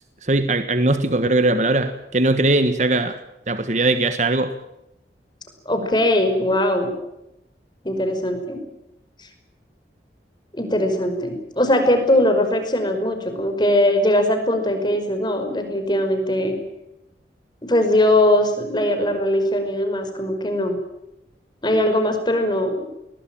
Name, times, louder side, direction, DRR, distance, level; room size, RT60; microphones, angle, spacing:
voice 1, 0.2-3.2 3.5-4.5, right 2 dB, 40° right, 10 dB, 1.5 m, -20 dB
voice 2, 5.7-6.9 7.8-8.6 9.2-9.3 10.5-16.6 17.6-20.8 21.6-22.7, left 1 dB, 25° left, 6 dB, 5.3 m, -20 dB
21.0 x 21.0 x 8.9 m, 0.87 s
head